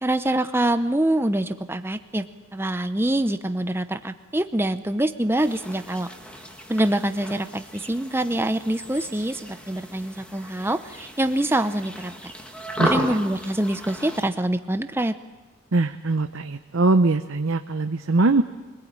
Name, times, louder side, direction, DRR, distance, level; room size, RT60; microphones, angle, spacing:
voice 1, 0.0-2.3 2.5-6.1 6.7-12.3 12.8-15.2, right 1 dB, 10° right, 10 dB, 0.7 m, -25 dB
sound 1, 5.4-14.3, equal, 5° left, 1.7 m, -35 dB
voice 2, 15.7-18.4, right 3 dB, 65° right, 8 dB, 0.7 m, -21 dB
24.5 x 19.5 x 8.8 m, 1.3 s
head